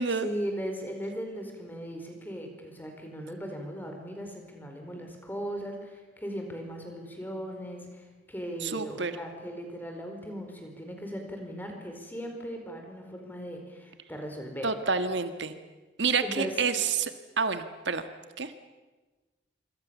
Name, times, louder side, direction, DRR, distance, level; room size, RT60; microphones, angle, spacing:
voice 1, 0.2-14.7 16.2-16.5, equal, 10° left, 3 dB, 4.7 m, -38 dB
voice 2, 8.6-9.1 14.6-15.5 16.0-18.0 18.4-18.5, right 5 dB, 75° right, 9 dB, 1.5 m, -28 dB
26.0 x 26.0 x 7.1 m, 1.2 s
head